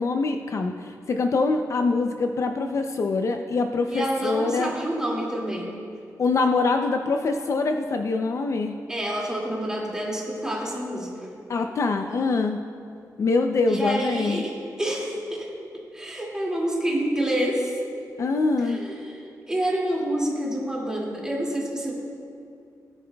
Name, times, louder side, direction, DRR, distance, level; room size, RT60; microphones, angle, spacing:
voice 1, 0.0-4.7 6.2-8.8 11.5-12.6 13.2-14.4 18.2-18.8, left 3 dB, 50° left, 5 dB, 0.4 m, -24 dB
voice 2, 3.9-5.7 8.9-11.3 13.7-15.5 15.9-17.7 18.6-21.9, right 1 dB, 10° right, -4 dB, 2.1 m, -28 dB
17.5 x 10.0 x 2.2 m, 2.4 s
wide cardioid pair, 155°, 7 cm